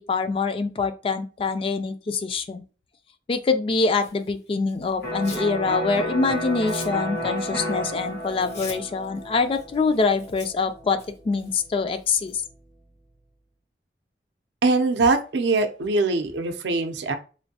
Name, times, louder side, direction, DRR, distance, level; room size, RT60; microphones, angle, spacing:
voice 1, 0.0-2.6 3.3-11.0 11.2-12.4, left 4 dB, 30° left, 0.3 m, -24 dB
Tearing, 3.9-5.5 5.9-12.4, left 3 dB, 70° left, 1.2 m, -45 dB
Electric guitar, 5.0-12.7, equal, 90° left, 1.4 m, -32 dB
voice 2, 14.6-17.1, right 3 dB, 75° right, 0.5 m, -22 dB
3.1 x 2.6 x 2.7 m
head